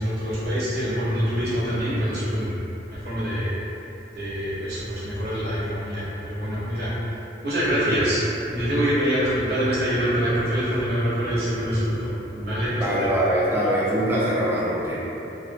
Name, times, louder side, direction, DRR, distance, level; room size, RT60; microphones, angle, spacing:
voice 1, 0.0-2.6 2.9-3.5 4.1-6.9 7.4-8.2 8.5-13.1, equal, 60° right, -9 dB, 0.7 m, -25 dB
voice 2, 12.8-15.0, equal, 10° right, -7 dB, 0.3 m, -23 dB
2.4 x 2.1 x 2.5 m, 2.9 s
head